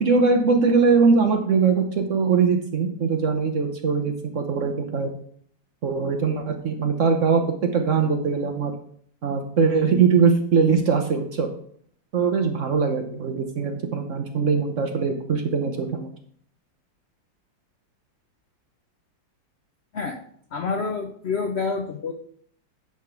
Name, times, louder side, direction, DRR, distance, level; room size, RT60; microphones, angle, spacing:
voice 1, 0.0-5.1 5.8-7.4 7.7-8.7 9.2-11.5 12.1-16.1, right 5 dB, 55° right, 4 dB, 0.9 m, -21 dB
voice 2, 20.5-22.1, left 4 dB, 75° left, 5 dB, 0.5 m, -27 dB
10.5 x 3.6 x 5.9 m, 0.62 s
omnidirectional pair, 2.0 m